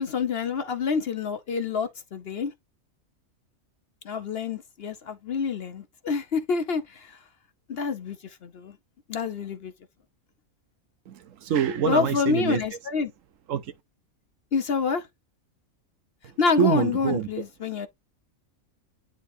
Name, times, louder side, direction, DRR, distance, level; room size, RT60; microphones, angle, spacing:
voice 1, 0.0-2.5 4.0-7.2 7.7-8.8 9.1-9.7 11.8-13.1 14.5-15.1 16.4-17.9, left 5 dB, 55° left, 0.8 m, -27 dB
voice 2, 11.1-12.6 13.5-13.7 16.2-17.3, right 8 dB, 70° right, 1.0 m, -26 dB
9.8 x 3.8 x 2.7 m
omnidirectional pair, 1.4 m